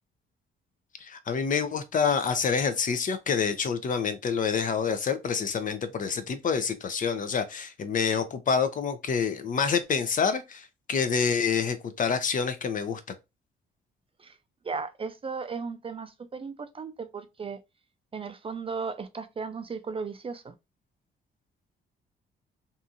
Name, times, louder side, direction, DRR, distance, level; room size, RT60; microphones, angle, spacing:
voice 1, 1.0-13.0, left 6 dB, 40° left, 0.5 m, -27 dB
voice 2, 14.6-17.6 18.1-20.5, right 5 dB, 30° right, 0.4 m, -36 dB
2.7 x 2.4 x 2.6 m
cardioid pair, 90°, 20 cm